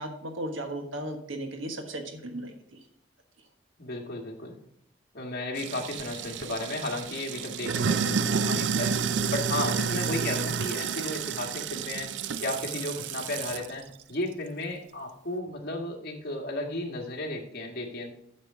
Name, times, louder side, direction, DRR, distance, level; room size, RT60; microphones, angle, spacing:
voice 1, 0.0-2.8, right 1 dB, 85° right, 5 dB, 1.4 m, -36 dB
voice 2, 3.8-4.6 5.1-8.9 9.3-12.1 12.4-13.8 14.1-18.1, left 2 dB, 50° left, 1 dB, 1.8 m, -34 dB
Sink (filling or washing), 5.6-13.7, right 6 dB, 65° right, 0.4 m, -30 dB
8.5 x 6.6 x 4.8 m, 0.71 s
head